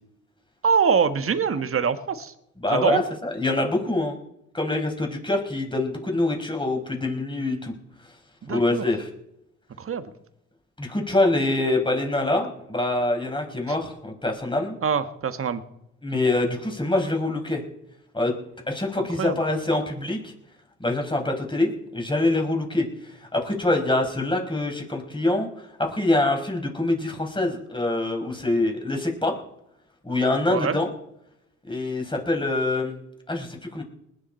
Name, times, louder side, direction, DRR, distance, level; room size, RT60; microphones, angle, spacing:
voice 1, 0.6-2.3 2.7-3.0 8.4-8.9 9.8-10.1 14.8-15.6 19.0-19.4 30.5-30.8, right 6 dB, 45° right, 10 dB, 1.6 m, -24 dB
voice 2, 2.6-4.2 4.5-7.7 8.5-9.1 10.8-14.8 16.0-17.6 18.1-18.3 18.7-20.3 20.8-22.9 23.3-25.5 25.9-29.3 30.0-30.9 31.6-33.0 33.3-33.8, left 2 dB, 15° left, 2 dB, 5.1 m, -25 dB
20.0 x 10.0 x 4.5 m, 0.81 s
supercardioid pair, 70°, 32 cm